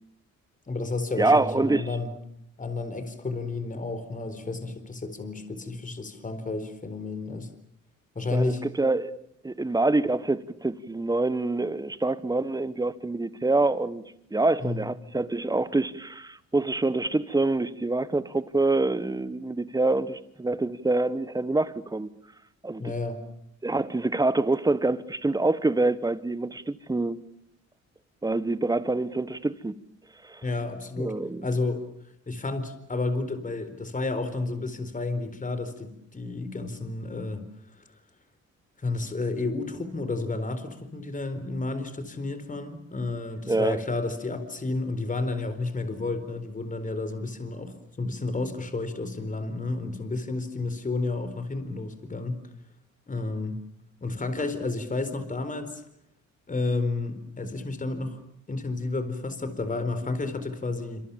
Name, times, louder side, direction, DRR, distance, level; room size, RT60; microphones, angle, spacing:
voice 1, 0.7-2.1 2.6-7.5 8.1-8.6 14.6-14.9 22.8-23.2 30.4-31.2 31.4-31.8 32.3-37.4 37.7-37.8 38.8-52.4 53.1-53.6 54.0-55.8 56.5-58.2 58.5-61.0, left 3 dB, 25° left, 4.2 m, -31 dB
voice 2, 1.2-1.9 8.3-9.1 9.4-14.0 14.3-22.1 22.6-22.9 23.6-27.2 28.2-29.7 30.2-30.4 31.0-31.4 43.5-43.8, right 2 dB, 10° right, 1.5 m, -26 dB
28.0 x 26.0 x 7.2 m
cardioid pair, 90°, 30 cm